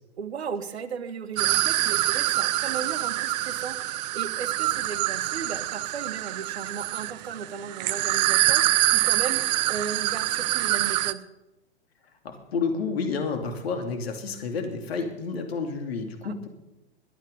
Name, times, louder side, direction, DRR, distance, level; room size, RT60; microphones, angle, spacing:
voice 1, 0.2-11.2 16.2-16.3, right 6 dB, 70° right, 13 dB, 1.5 m, -36 dB
sound 1, 1.4-11.1, right 17 dB, 40° right, 0.7 m, -25 dB
voice 2, 12.2-16.5, left 4 dB, 65° left, 5 dB, 2.7 m, -30 dB
22.5 x 9.4 x 5.3 m, 0.93 s
figure-of-eight pair, 110°, 34 cm